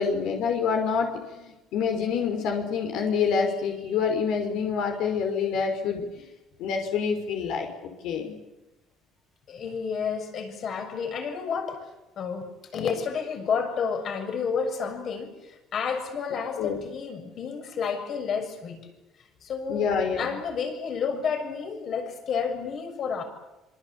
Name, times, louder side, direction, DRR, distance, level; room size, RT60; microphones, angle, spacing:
voice 1, 0.0-6.3 6.6-8.4 16.6-16.8 19.7-20.3, left 6 dB, 75° left, 4 dB, 5.5 m, -27 dB
voice 2, 9.5-11.8 12.2-18.9 19.4-23.2, left 6 dB, 50° left, 6 dB, 6.6 m, -30 dB
26.0 x 26.0 x 8.7 m, 1.0 s
cardioid pair, 125°, 0 cm